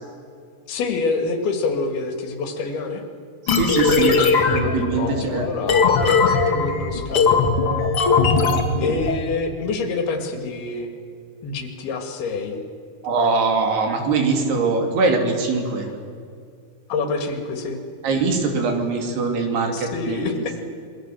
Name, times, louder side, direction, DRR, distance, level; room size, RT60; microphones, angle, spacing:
voice 1, 0.7-3.0 5.0-7.5 8.8-10.9 11.4-12.6 16.9-17.8 19.7-20.6, left 4 dB, 75° left, 5 dB, 4.0 m, -27 dB
sound 1, 3.5-9.2, left 4 dB, 40° left, 2.4 m, -19 dB
voice 2, 3.5-4.2 4.5-5.7 13.0-15.9 18.0-20.2, right 4 dB, 80° right, 3 dB, 4.8 m, -22 dB
27.0 x 22.5 x 7.7 m, 2.3 s
omnidirectional pair, 4.6 m